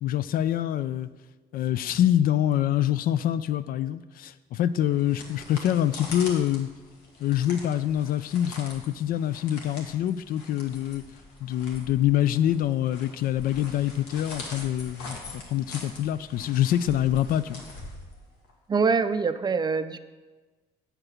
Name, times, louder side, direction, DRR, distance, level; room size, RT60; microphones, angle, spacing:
voice 1, 0.0-1.1 1.5-6.7 7.2-11.0 11.4-17.6, left 11 dB, 60° left, 0.4 m, -25 dB
sound 1, 4.8-18.5, left 2 dB, 85° left, 1.8 m, -43 dB
voice 2, 18.7-20.0, right 5 dB, 25° right, 0.4 m, -24 dB
8.7 x 4.7 x 6.5 m
cardioid pair, 110°, 17 cm